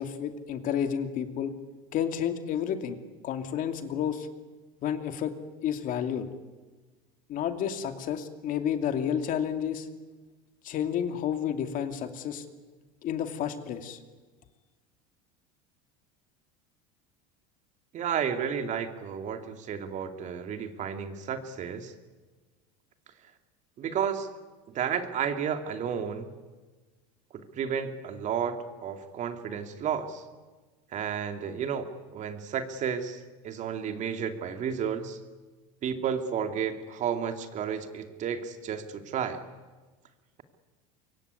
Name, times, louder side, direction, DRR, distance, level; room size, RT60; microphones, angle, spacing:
voice 1, 0.0-1.5 1.9-3.0 3.2-4.3 4.8-5.3 5.6-6.3 7.3-9.9 10.6-12.4 13.0-14.0, left 9 dB, 45° left, 7 dB, 2.5 m, -30 dB
voice 2, 17.9-21.9 23.8-24.3 24.7-26.3 27.3-30.2 30.9-35.2 35.8-39.4, right 7 dB, 40° right, 7 dB, 2.5 m, -32 dB
24.5 x 23.0 x 9.7 m, 1.3 s
supercardioid pair, 125°, 18 cm